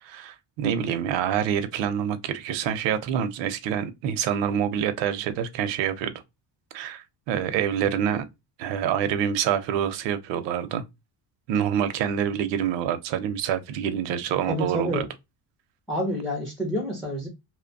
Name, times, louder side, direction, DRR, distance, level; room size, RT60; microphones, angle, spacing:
voice 1, 0.0-6.1 6.7-8.2 8.6-10.8 11.5-15.1, right 9 dB, 85° right, 0.6 m, -26 dB
voice 2, 14.5-15.1 15.9-17.3, equal, ahead, 0.3 m, -28 dB
2.8 x 2.1 x 2.5 m
cardioid pair, 175°, 43 cm